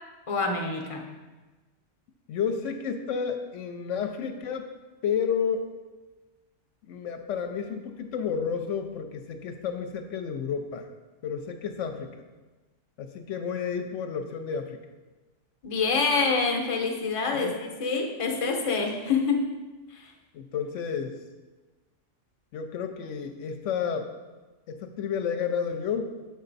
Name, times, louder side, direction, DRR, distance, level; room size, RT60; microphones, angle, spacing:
voice 1, 0.3-1.1 15.6-19.5 19.9-20.1, left 4 dB, 30° left, 2 dB, 0.8 m, -26 dB
voice 2, 2.3-4.7 5.0-5.7 6.8-10.9 11.2-12.1 13.0-14.8 17.3-17.5 20.3-21.2 22.5-24.1 24.7-26.1, left 7 dB, 75° left, 6 dB, 0.9 m, -31 dB
6.8 x 5.4 x 4.0 m, 1.2 s
omnidirectional pair, 1.3 m